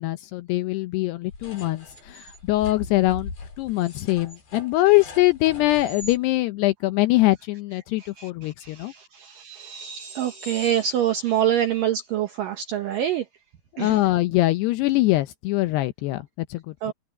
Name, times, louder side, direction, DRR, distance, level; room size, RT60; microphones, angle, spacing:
voice 1, 0.0-3.3 3.6-8.9 13.7-16.9, left 18 dB, 80° left, 2.5 m, -23 dB
sound 1, 1.3-6.2, left 3 dB, 55° left, 8.1 m, -40 dB
voice 2, 8.0-13.3 13.8-14.0 16.8-16.9, right 10 dB, 75° right, 2.0 m, -26 dB
omnidirectional pair, 5.3 m